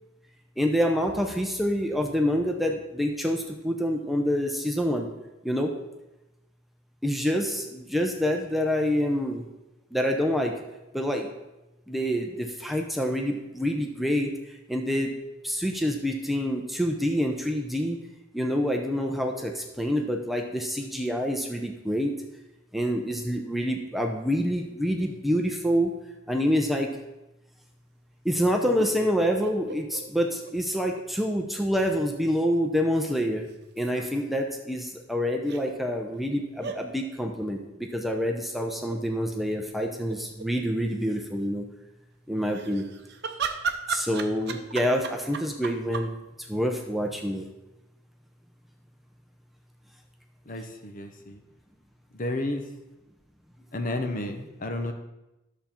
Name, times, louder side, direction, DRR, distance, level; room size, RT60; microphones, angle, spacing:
voice 1, 0.6-5.1 5.4-5.7 7.0-9.4 9.9-10.6 10.9-11.3 11.9-15.1 15.4-18.0 18.3-22.1 22.7-25.9 26.3-26.9 28.2-33.5 33.8-41.7 42.3-42.9 43.9-46.1 46.4-47.4, equal, ahead, 2 dB, 0.7 m, -27 dB
sound 1, 28.8-31.0 31.3-31.4 33.5-34.2 35.5-35.6 36.6-36.8 38.6-39.0 39.5-39.6 39.8-40.5 42.4-46.1, right 5 dB, 55° right, 0.8 m, -35 dB
voice 2, 50.5-51.4 52.1-52.7 53.7-54.9, left 2 dB, 40° left, 6 dB, 0.9 m, -32 dB
11.0 x 7.0 x 4.4 m, 0.98 s
head